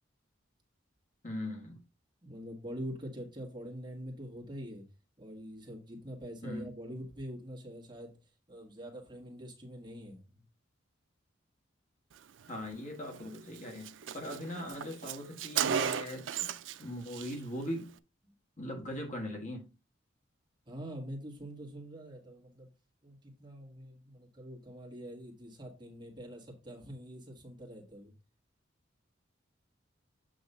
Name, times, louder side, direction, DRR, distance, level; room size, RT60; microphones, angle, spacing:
voice 1, 1.2-1.8 6.4-6.7 12.5-16.5 16.8-17.9 18.6-19.7, left 1 dB, 40° left, 1.6 m, -40 dB
voice 2, 2.2-4.8 5.2-8.2 8.5-10.4 20.7-22.7 23.0-28.1, equal, 25° right, 1.9 m, -45 dB
Car, 13.1-13.3 13.6-13.7 13.8-16.8 17.1-17.3, right 8 dB, 75° right, 0.4 m, -34 dB
7.8 x 3.1 x 5.4 m
head